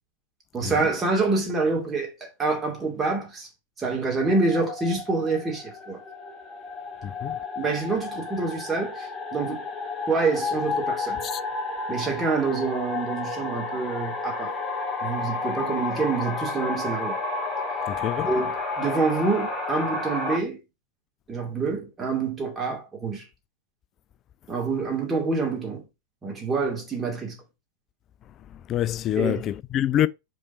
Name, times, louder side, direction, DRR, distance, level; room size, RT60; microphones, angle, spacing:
voice 1, 0.5-2.1 2.4-3.5 3.8-6.0 7.6-9.6 10.1-11.2 11.9-14.5 15.0-17.2 18.3-20.6 21.3-23.2 24.5-25.8 26.2-27.4 29.2-29.4, right 4 dB, 15° right, 2.4 m, -26 dB
sound 1, 4.1-20.4, left 3 dB, 5° left, 1.6 m, -31 dB
voice 2, 17.9-18.3 28.7-30.1, left 11 dB, 30° left, 0.3 m, -25 dB
5.3 x 4.7 x 4.2 m
figure-of-eight pair, 90°, 0 cm